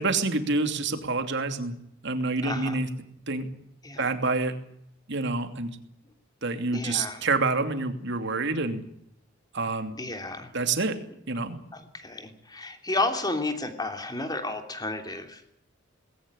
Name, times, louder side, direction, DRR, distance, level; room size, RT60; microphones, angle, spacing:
voice 1, 0.0-1.8 2.0-2.9 3.3-3.5 4.0-4.5 5.1-5.8 6.4-8.8 9.5-9.9 10.5-11.0 11.3-11.6, right 3 dB, 60° right, 7 dB, 2.8 m, -27 dB
voice 2, 2.4-2.8 3.8-4.1 6.7-7.2 10.0-10.5 11.7-15.5, left 2 dB, 20° left, 6 dB, 3.0 m, -32 dB
20.0 x 17.5 x 9.8 m, 0.73 s
head